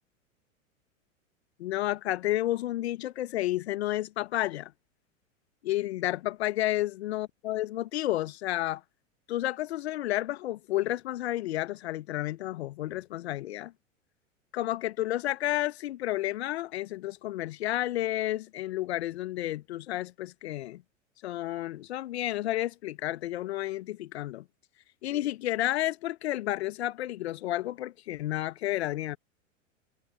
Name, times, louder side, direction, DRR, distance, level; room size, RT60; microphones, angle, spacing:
voice 1, 1.6-4.7 5.6-8.8 9.3-13.7 14.5-20.8 21.2-24.4 25.0-29.2, left 15 dB, 55° left, 1.5 m, -31 dB
figure-of-eight pair, 90°, 39 cm